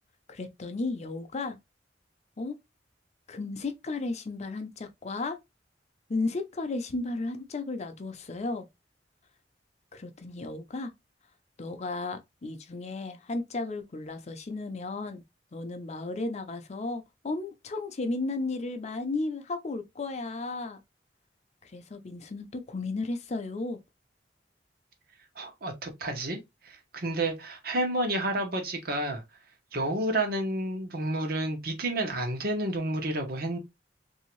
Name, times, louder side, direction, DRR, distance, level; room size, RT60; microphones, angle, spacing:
voice 1, 0.3-1.6 2.4-2.6 3.3-5.4 6.1-8.7 9.9-10.9 11.6-15.2 15.5-20.8 21.6-23.8, left 3 dB, 40° left, 0.5 m, -34 dB
voice 2, 25.4-26.4 26.6-29.2 29.7-33.6, right 1 dB, 55° right, 1.0 m, -30 dB
3.3 x 2.7 x 3.0 m
head